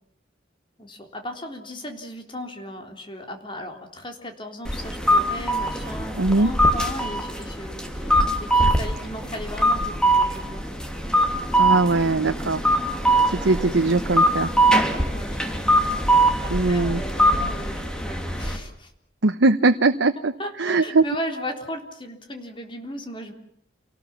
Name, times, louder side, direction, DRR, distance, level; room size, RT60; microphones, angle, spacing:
voice 1, 0.8-10.7 15.1-18.9 20.4-23.3, equal, 25° left, 4 dB, 3.6 m, -36 dB
sound 1, 4.6-18.6, right 1 dB, 5° left, 2.8 m, -22 dB
voice 2, 6.2-6.5 11.5-12.6 13.3-14.5 16.5-17.0 19.2-20.3 20.6-21.0, right 3 dB, 85° right, 7 dB, 1.0 m, -20 dB
28.5 x 19.0 x 7.3 m, 0.74 s
head